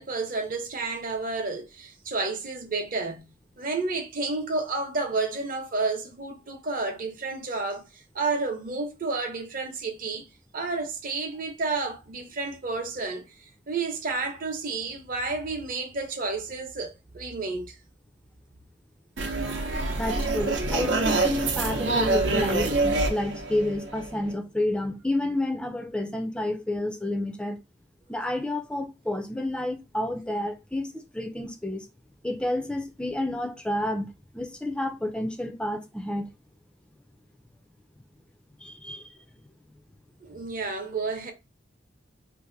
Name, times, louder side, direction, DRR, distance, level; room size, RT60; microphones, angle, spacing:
voice 1, 0.0-3.3 3.6-7.8 8.1-10.2 10.5-13.2 13.7-17.7 40.2-41.3, right 3 dB, 50° right, 0.8 m, -31 dB
sound 1, 19.2-24.3, right 3 dB, 85° right, 0.8 m, -26 dB
voice 2, 20.0-27.6 28.1-30.9 31.1-31.8 32.2-34.1 34.3-36.3 38.6-39.2, left 1 dB, 5° left, 0.4 m, -30 dB
2.7 x 2.5 x 3.8 m
head